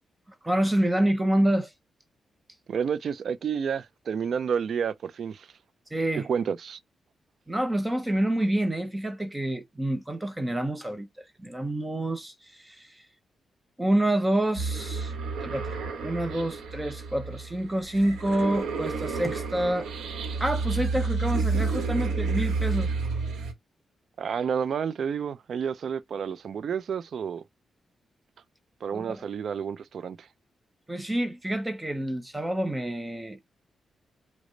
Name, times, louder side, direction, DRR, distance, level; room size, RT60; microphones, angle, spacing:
voice 1, 0.4-1.7 5.9-6.3 7.5-13.0 13.8-15.1 15.4-19.9 20.4-22.9 28.9-29.2 30.9-33.4, right 1 dB, 10° right, 0.6 m, -28 dB
voice 2, 2.7-5.5 6.1-6.8 24.2-27.4 28.8-30.3, right 7 dB, 60° right, 0.4 m, -30 dB
sound 1, 14.6-23.5, right 4 dB, 90° right, 1.0 m, -30 dB
5.1 x 2.1 x 3.8 m
cardioid pair, 115°, 0 cm